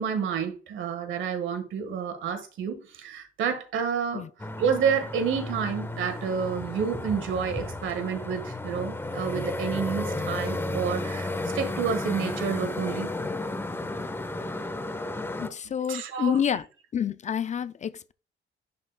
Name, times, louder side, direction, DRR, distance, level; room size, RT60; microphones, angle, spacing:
voice 1, 0.0-4.2 4.5-11.3 11.5-13.1 15.9-16.4, right 6 dB, 75° right, 1.5 m, -29 dB
sound 1, 4.4-15.5, left 2 dB, 10° left, 0.9 m, -33 dB
voice 2, 15.4-16.6 16.9-18.1, left 8 dB, 35° left, 0.4 m, -28 dB
11.0 x 4.0 x 2.2 m
cardioid pair, 90°, 20 cm